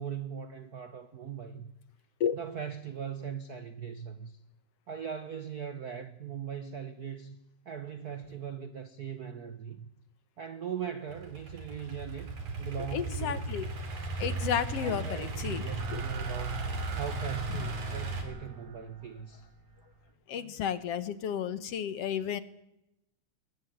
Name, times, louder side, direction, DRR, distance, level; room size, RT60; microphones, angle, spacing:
voice 1, 0.0-1.7 2.3-4.4 4.9-7.4 7.6-9.9 10.4-13.5 14.8-19.5, right 8 dB, 85° right, 11 dB, 0.8 m, -40 dB
Idling / Accelerating revving vroom, 11.1-18.2, right 3 dB, 70° right, 5.1 m, -36 dB
voice 2, 12.9-13.7 14.2-15.6 15.9-16.0 20.3-22.4, left 8 dB, 60° left, 14 dB, 1.9 m, -32 dB
sound 1, 15.7-20.1, right 5 dB, 45° right, 2.6 m, -48 dB
22.0 x 20.5 x 9.4 m, 0.86 s
omnidirectional pair, 3.5 m